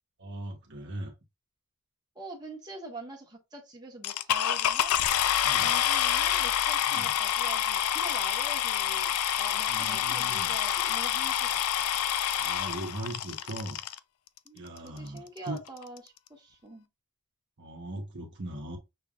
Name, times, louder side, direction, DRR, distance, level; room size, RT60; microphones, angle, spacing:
voice 1, 0.2-1.1 5.4-5.7 6.9-7.1 9.7-10.5 12.4-13.8 14.5-15.6 17.6-18.8, right 1 dB, 55° right, 1.2 m, -39 dB
voice 2, 2.1-5.0 5.4-11.9 14.4-16.9, right 2 dB, 20° right, 1.5 m, -45 dB
sound 1, 4.0-14.0 14.8-14.9 15.4-15.5 15.7-16.0, left 10 dB, 75° left, 0.4 m, -27 dB
6.3 x 3.4 x 2.5 m
head